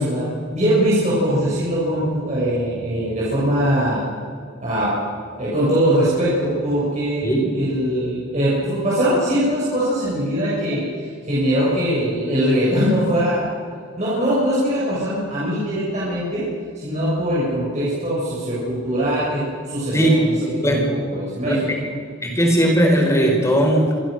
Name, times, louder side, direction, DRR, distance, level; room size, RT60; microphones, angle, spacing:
voice 1, 0.0-4.0 4.6-4.9 5.4-13.5 14.0-16.4 16.8-21.7, equal, 35° right, -8 dB, 7.0 m, -21 dB
voice 2, 21.4-21.8 22.2-23.9, right 1 dB, 15° left, 1 dB, 4.6 m, -18 dB
26.0 x 18.0 x 6.7 m, 2.1 s
head